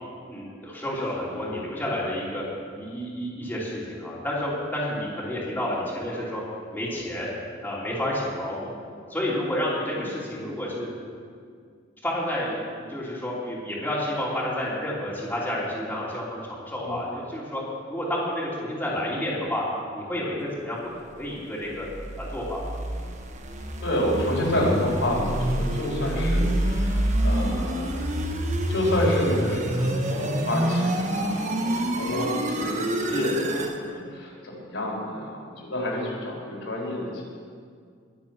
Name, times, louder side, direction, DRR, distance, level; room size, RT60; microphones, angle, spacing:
voice 1, 0.3-2.4 2.8-6.4 6.7-7.3 7.6-8.7 9.1-10.9 12.0-17.6 17.9-19.6 19.9-21.9 22.2-22.8, left 1 dB, 10° left, -7 dB, 3.1 m, -30 dB
sound 1, 21.6-33.8, right 1 dB, 40° right, 1.2 m, -27 dB
voice 2, 23.8-28.1 28.7-37.2, left 1 dB, 75° left, -3 dB, 4.4 m, -28 dB
22.0 x 7.8 x 6.0 m, 2.1 s
head